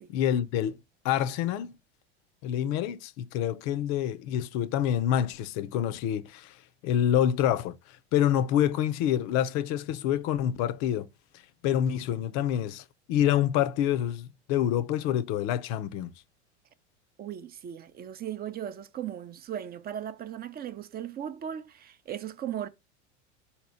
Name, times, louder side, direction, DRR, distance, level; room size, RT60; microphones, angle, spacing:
voice 1, 0.1-0.8 1.0-1.8 2.4-6.6 6.8-11.1 11.6-16.1, left 10 dB, 55° left, 0.6 m, -27 dB
voice 2, 17.2-22.7, right 10 dB, 30° right, 0.5 m, -37 dB
4.2 x 2.8 x 4.2 m
hypercardioid pair, 95°, 33 cm